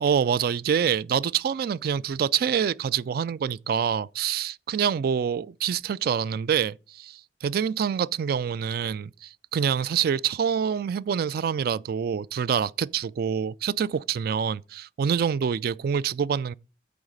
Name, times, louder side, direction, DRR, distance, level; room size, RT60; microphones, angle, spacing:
voice 1, 0.0-16.5, right 7 dB, 55° right, 0.3 m, -26 dB
8.6 x 4.0 x 6.5 m
head